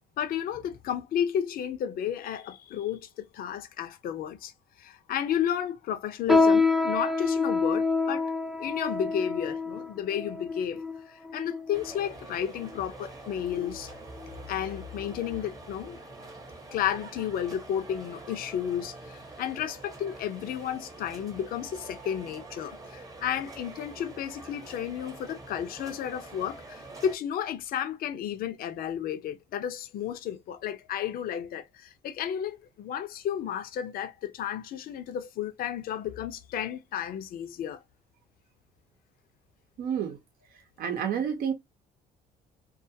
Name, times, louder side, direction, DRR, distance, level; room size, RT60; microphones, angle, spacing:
voice 1, 0.2-4.5 4.8-8.3 8.6-13.9 14.5-16.0 16.7-37.8, left 9 dB, 60° left, 0.6 m, -32 dB
sound 1, 6.3-12.0 12.6-12.8 13.5-13.8 14.2-14.4 15.1-15.2, left 3 dB, ahead, 0.4 m, -27 dB
sound 2, 11.7-27.2, right 2 dB, 20° right, 0.9 m, -45 dB
voice 2, 39.8-40.2 40.8-41.5, right 8 dB, 60° right, 0.7 m, -29 dB
2.4 x 2.3 x 2.7 m
cardioid pair, 110°, 17 cm